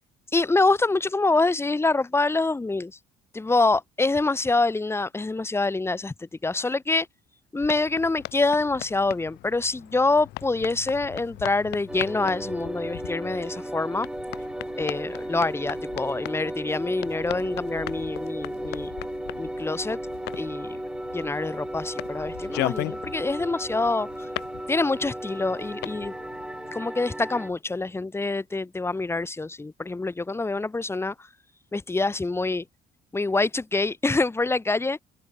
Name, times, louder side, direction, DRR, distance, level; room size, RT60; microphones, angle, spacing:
voice 1, 0.3-2.9 3.3-6.1 6.4-7.1 7.5-14.1 14.8-18.9 19.4-20.0 20.3-20.8 21.1-24.1 24.7-26.1 26.7-31.1 31.7-32.6 33.1-35.0, left 3 dB, 15° left, 1.8 m, -25 dB
sound 1, 7.6-26.8, left 18 dB, 85° left, 6.1 m, -39 dB
sound 2, 11.9-27.5, right 1 dB, 5° right, 6.5 m, -35 dB
open air
cardioid pair, 110°, 17 cm